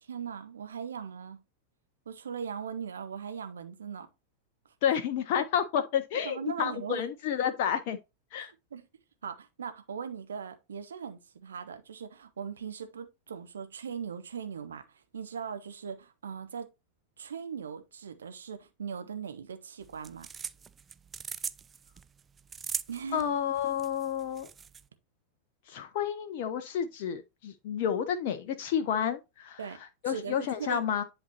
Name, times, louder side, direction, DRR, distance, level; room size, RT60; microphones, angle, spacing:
voice 1, 0.0-1.4 2.1-4.1 6.2-7.0 8.4-8.9 9.2-16.7 17.2-20.3 22.9-23.2 29.6-29.8 30.0-30.8, right 7 dB, 70° right, 1.0 m, -39 dB
voice 2, 4.8-8.0 8.3-8.5 23.1-24.5 25.7-29.6 30.0-31.0, left 8 dB, 50° left, 0.6 m, -30 dB
sound 1, 19.8-24.8, right 6 dB, 20° right, 0.3 m, -40 dB
10.5 x 4.1 x 2.9 m
figure-of-eight pair, 90°, 0 cm